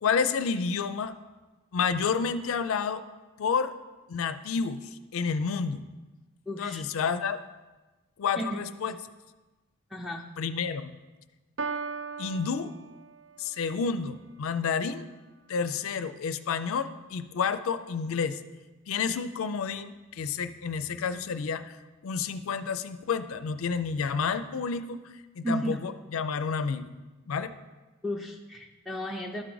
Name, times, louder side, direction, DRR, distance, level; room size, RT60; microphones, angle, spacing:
voice 1, 0.0-1.1 1.7-3.0 3.4-3.7 4.1-4.8 5.1-5.8 6.6-7.4 8.2-8.9 10.4-11.0 12.2-12.7 13.4-15.0 15.5-18.4 18.9-21.8 22.0-25.0 25.4-26.9 27.3-27.5, left 5 dB, 65° left, 11 dB, 0.4 m, -30 dB
voice 2, 6.5-6.8 8.3-8.6 9.9-10.2 25.4-25.8 28.0-29.4, equal, ahead, -1 dB, 0.4 m, -33 dB
Piano, 11.6-13.6, right 4 dB, 60° right, 0.4 m, -37 dB
12.5 x 4.7 x 3.9 m, 1.2 s
head